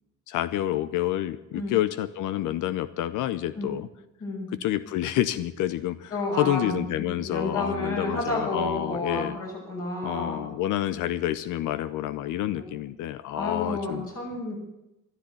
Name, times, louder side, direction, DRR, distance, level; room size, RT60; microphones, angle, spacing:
voice 1, 0.3-3.9 4.6-9.4 10.0-14.1, left 13 dB, 90° left, 14 dB, 0.7 m, -28 dB
voice 2, 6.1-10.4 12.5-12.7 13.3-14.6, left 2 dB, 50° left, -3 dB, 6.8 m, -31 dB
13.5 x 12.5 x 8.3 m, 0.91 s
cardioid pair, 90°, 30 cm